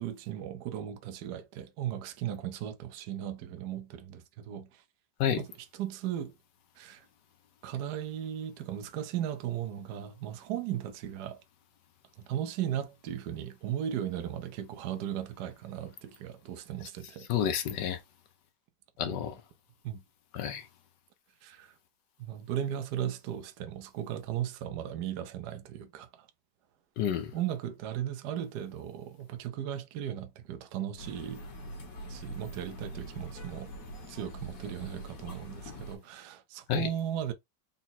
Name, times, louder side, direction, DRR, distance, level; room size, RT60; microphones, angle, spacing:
voice 1, 0.0-4.8 5.4-6.3 6.8-7.1 7.6-11.4 12.2-17.3 19.0-19.3 19.8-20.0 21.4-21.8 22.2-26.3 27.3-31.4 32.0-33.7 34.1-37.3, right 10 dB, 70° right, 1.1 m, -36 dB
voice 2, 17.3-18.0 19.0-19.3 20.3-20.7 27.0-27.3 36.7-36.9, left 9 dB, 75° left, 1.2 m, -29 dB
sound 1, 31.0-36.0, equal, 50° left, 1.4 m, -43 dB
4.0 x 2.2 x 4.1 m
omnidirectional pair, 2.1 m